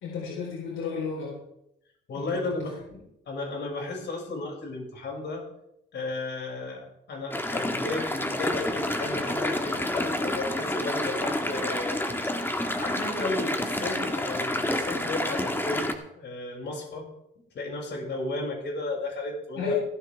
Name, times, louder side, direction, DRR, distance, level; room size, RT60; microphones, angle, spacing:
voice 1, 0.0-1.4 2.1-2.7 19.6-19.7, left 4 dB, 85° left, -3 dB, 4.1 m, -33 dB
voice 2, 2.1-2.7 3.3-5.4 5.9-12.0 12.2-12.3 12.8-17.1 17.5-19.7, left 2 dB, 60° left, -1 dB, 6.5 m, -34 dB
sound 1, 7.3-15.9, left 1 dB, 10° left, 1.9 m, -29 dB
16.5 x 14.5 x 3.6 m, 0.82 s
cardioid pair, 90°, 20 cm